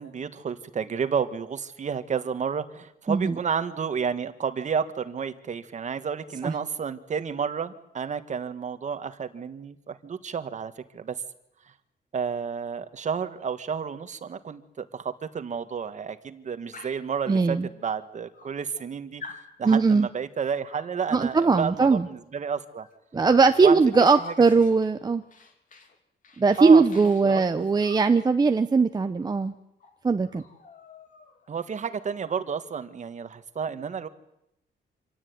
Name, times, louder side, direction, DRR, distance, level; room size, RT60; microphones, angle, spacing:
voice 1, 0.0-11.2 12.1-17.6 17.8-19.2 19.6-22.9 23.6-23.8 24.2-24.3 26.6-27.7 31.5-34.1, right 6 dB, 40° right, 11 dB, 1.6 m, -31 dB
Dog, 16.7-17.1 18.0-18.1 18.3-18.9 19.2-19.5 20.7-21.0 22.8-23.0 23.2-25.9 26.2-28.1 29.4-29.5 29.8-30.0 30.3-31.5, left 4 dB, 45° left, 3.3 m, -47 dB
voice 2, 17.3-17.7 19.6-20.1 21.1-22.1 23.1-25.2 26.4-29.5 30.0-30.4, right 4 dB, 20° right, 7 dB, 0.8 m, -20 dB
26.5 x 17.0 x 9.6 m, 0.83 s
wide cardioid pair, 155°, 18 cm